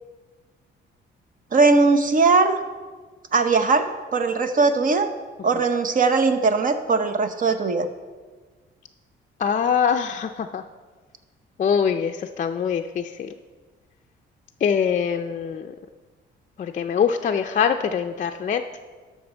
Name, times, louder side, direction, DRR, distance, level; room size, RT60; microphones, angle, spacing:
voice 1, 1.5-2.6 3.3-3.8 4.1-5.1 5.4-7.9, right 4 dB, 45° right, 8 dB, 0.9 m, -19 dB
voice 2, 9.4-10.6 11.6-13.3 14.6-15.7 16.6-18.6, left 7 dB, 40° left, 4 dB, 0.4 m, -23 dB
12.5 x 5.9 x 4.4 m, 1.4 s
cardioid pair, 90°, 20 cm